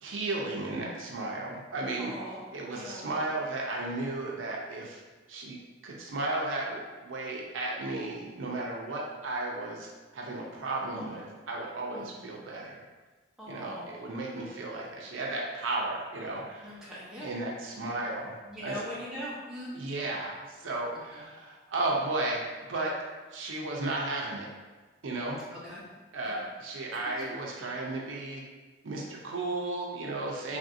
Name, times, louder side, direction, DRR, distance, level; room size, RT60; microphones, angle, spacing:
voice 1, 0.0-5.0 5.3-5.6 5.8-12.8 13.5-16.7 17.2-18.8 19.7-23.0 23.3-24.5 25.0-25.4 26.1-28.4 28.8-30.6, right 2 dB, 80° right, -2 dB, 0.5 m, -34 dB
voice 2, 2.0-2.4 2.7-3.1 11.9-12.1 13.4-13.9 16.6-17.3 17.7-17.8 18.4-19.7 25.6-25.8 26.2-26.4 27.2-27.3 30.5-30.6, equal, 5° right, -9 dB, 0.8 m, -41 dB
3.2 x 2.5 x 2.6 m, 1.3 s
head